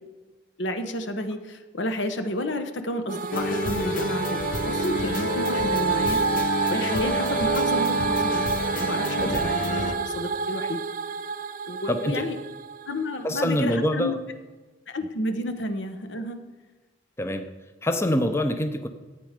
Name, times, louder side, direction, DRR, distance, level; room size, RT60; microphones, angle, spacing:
voice 1, 0.6-10.8 11.7-12.4 12.9-14.1 14.9-16.4, left 1 dB, 75° left, 7 dB, 1.0 m, -31 dB
sound 1, 3.1-13.3, right 6 dB, 45° right, 0.4 m, -28 dB
sound 2, 3.3-9.9, left 2 dB, 50° left, 1.0 m, -29 dB
voice 2, 11.9-12.2 13.2-14.2 17.2-17.5 17.8-18.9, left 1 dB, 15° left, 7 dB, 0.5 m, -25 dB
14.0 x 8.7 x 5.0 m, 1.3 s
head